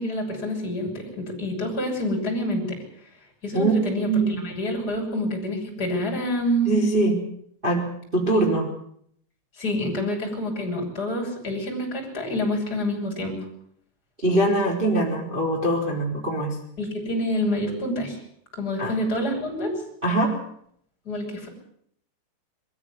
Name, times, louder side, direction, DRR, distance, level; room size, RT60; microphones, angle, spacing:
voice 1, 0.0-2.8 3.4-4.1 4.4-6.8 8.3-8.4 9.6-13.4 16.8-18.2 18.5-19.7 21.0-21.5, left 1 dB, 20° left, 1 dB, 6.8 m, -27 dB
voice 2, 3.5-4.4 6.6-7.2 7.6-7.8 8.1-8.6 14.2-16.5 18.8-18.9 20.0-20.3, right 2 dB, 10° right, -1 dB, 3.4 m, -22 dB
23.0 x 14.5 x 9.8 m, 0.68 s
omnidirectional pair, 5.9 m